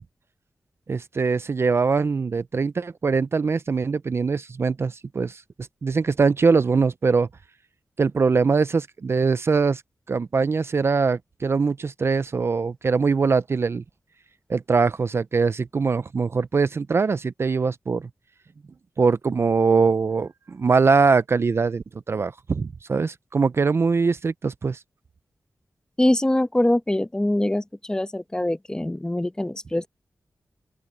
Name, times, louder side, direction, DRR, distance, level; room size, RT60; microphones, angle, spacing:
voice 1, 0.9-7.3 8.0-9.8 10.1-13.8 14.5-18.1 19.0-24.8, right 4 dB, 45° right, 0.4 m, -22 dB
voice 2, 26.0-29.9, left 1 dB, 15° left, 1.0 m, -23 dB
open air
wide cardioid pair, 110°, 6 cm